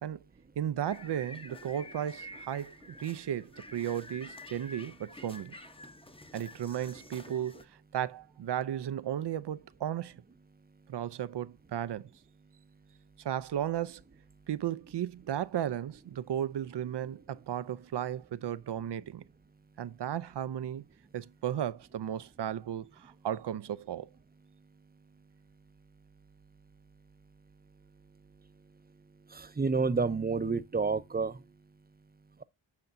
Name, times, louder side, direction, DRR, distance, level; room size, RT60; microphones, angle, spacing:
voice 1, 0.6-2.7 3.0-5.5 6.3-7.7 7.9-10.2 10.9-12.1 13.2-14.0 14.5-19.2 19.8-20.8 21.1-24.1, right 10 dB, 55° right, 0.6 m, -35 dB
sound 1, 0.8-7.7, left 1 dB, 10° left, 0.9 m, -49 dB
voice 2, 29.3-31.3, right 4 dB, 20° right, 0.7 m, -29 dB
9.6 x 5.7 x 2.6 m
cardioid pair, 45°, 49 cm